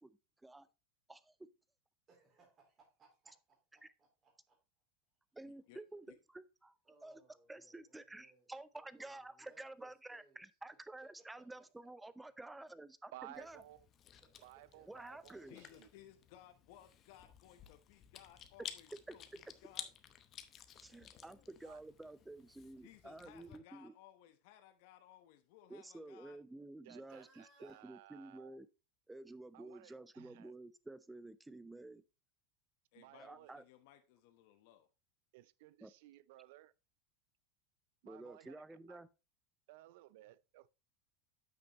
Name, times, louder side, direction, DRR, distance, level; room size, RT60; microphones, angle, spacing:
voice 1, 0.0-0.7 1.1-1.4 3.8-3.9 5.3-6.8 7.0-7.2 7.5-13.6 14.9-15.6 19.1-19.2 20.7-23.9 25.7-28.7 29.1-32.0 33.2-33.6 35.8-35.9 38.0-39.1, right 2 dB, 5° right, 0.5 m, -51 dB
voice 2, 2.1-4.6 6.0-6.1 6.8-10.4 11.0-11.3 14.2-15.5 20.8-22.3 22.6-22.8 27.1-27.8, right 3 dB, 30° right, 3.1 m, -69 dB
voice 3, 5.4-5.8 6.1-6.2 15.5-19.9 22.8-26.4 32.9-34.9, left 12 dB, 65° left, 1.0 m, -61 dB
voice 4, 13.1-13.8 14.4-15.9 21.6-21.8 26.8-28.6 29.5-30.5 32.9-33.5 35.3-36.7 38.0-38.6 38.9-39.0 39.7-40.7, right 16 dB, 70° right, 0.4 m, -57 dB
Chewing mastication, 13.3-23.6, left 9 dB, 35° left, 0.8 m, -54 dB
8.9 x 5.9 x 3.0 m
supercardioid pair, 125°, 0 cm